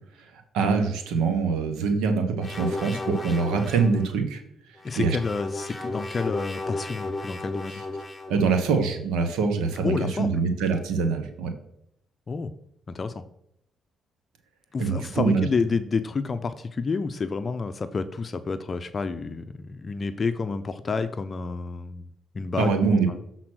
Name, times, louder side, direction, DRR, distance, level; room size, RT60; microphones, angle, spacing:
voice 1, 0.5-4.4 4.9-5.2 8.3-11.5 14.8-15.5 22.6-23.1, right 5 dB, 90° right, 6 dB, 1.3 m, -24 dB
sound 1, 2.4-4.0 4.8-8.4, left 2 dB, 15° left, 1.2 m, -34 dB
voice 2, 4.8-7.8 9.8-10.4 12.3-12.6 12.9-13.2 14.7-22.1 22.3-23.2, left 4 dB, 35° left, 10 dB, 0.6 m, -29 dB
7.5 x 4.1 x 6.2 m, 0.75 s
cardioid pair, 90°, 0 cm